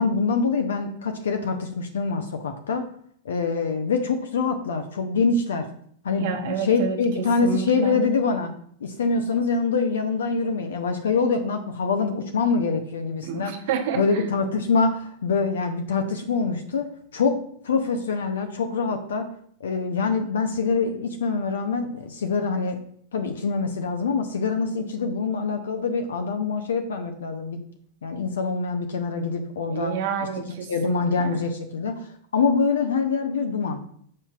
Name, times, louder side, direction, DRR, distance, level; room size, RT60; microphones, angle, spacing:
voice 1, 0.0-2.8 3.2-5.7 6.0-8.5 8.8-13.5 13.9-16.9 17.1-17.4 17.6-19.3 19.6-22.8 23.1-27.6 28.0-29.9 30.7-33.8, left 4 dB, 65° left, 6 dB, 0.6 m, -25 dB
voice 2, 6.2-8.0 13.2-14.3 29.7-31.4, right 7 dB, 50° right, 5 dB, 1.0 m, -30 dB
7.5 x 5.4 x 2.4 m, 0.63 s
figure-of-eight pair, 90°, 0 cm